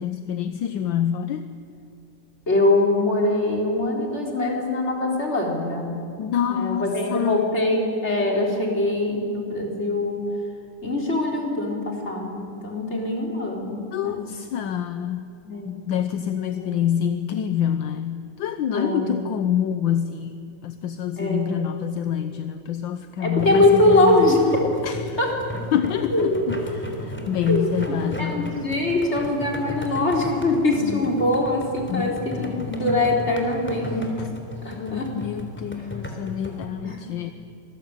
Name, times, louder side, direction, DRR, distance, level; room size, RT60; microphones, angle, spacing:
voice 1, 0.0-1.5 6.2-7.5 13.9-15.3 15.6-24.3 24.8-25.2 25.7-28.6 30.8-31.1 31.9-32.7 33.8-33.9 34.7-37.3, left 9 dB, 75° left, 10 dB, 1.5 m, -27 dB
voice 2, 2.5-10.2 10.8-14.2 15.4-15.7 16.5-16.7 18.7-19.2 21.2-21.6 23.2-24.4 25.2-25.3 26.1-26.5 27.5-34.1 34.6-35.1 36.8-37.0, left 2 dB, 30° left, 0 dB, 4.3 m, -23 dB
sound 1, 23.4-36.7, left 1 dB, 5° left, 3.2 m, -35 dB
26.0 x 20.0 x 9.1 m, 2.5 s
omnidirectional pair, 2.2 m